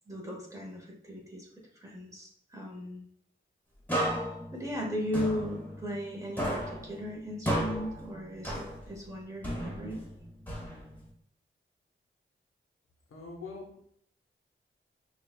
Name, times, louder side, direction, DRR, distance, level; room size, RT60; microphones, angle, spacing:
voice 1, 0.1-1.5 1.7-3.1 4.5-10.0, equal, 15° right, -2 dB, 1.3 m, -37 dB
sound 1, 3.9-6.1 6.4-9.0 9.4-11.1, equal, 10° left, 1.4 m, -34 dB
voice 2, 13.1-13.8, left 3 dB, 90° left, -1 dB, 0.9 m, -43 dB
6.0 x 2.4 x 2.3 m, 0.66 s
cardioid pair, 60°, 21 cm